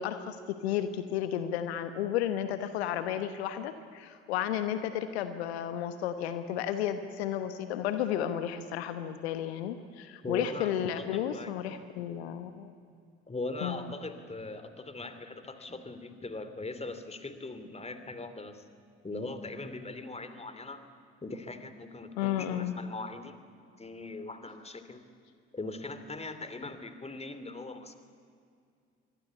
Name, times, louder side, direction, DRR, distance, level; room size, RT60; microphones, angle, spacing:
voice 1, 0.0-12.7 13.6-13.8 22.2-22.7, left 10 dB, 75° left, 10 dB, 1.2 m, -33 dB
voice 2, 10.2-11.5 13.3-18.6 19.0-20.8 21.2-23.4 23.8-25.0 25.5-28.0, left 2 dB, 20° left, 10 dB, 2.8 m, -40 dB
26.0 x 23.0 x 8.3 m, 2.3 s
figure-of-eight pair, 50°, 32 cm